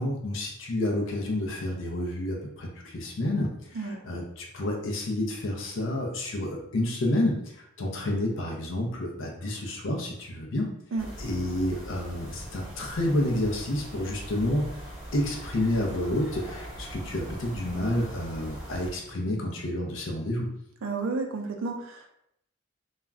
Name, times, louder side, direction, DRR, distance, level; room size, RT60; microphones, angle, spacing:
voice 1, 0.0-10.7 11.2-14.6 15.1-20.5, left 1 dB, 65° left, 0 dB, 0.4 m, -29 dB
sound 1, 11.0-18.9, equal, 5° right, 0.9 m, -41 dB
voice 2, 20.8-22.1, right 3 dB, 70° right, 3 dB, 0.5 m, -31 dB
2.3 x 2.1 x 3.4 m, 0.76 s
head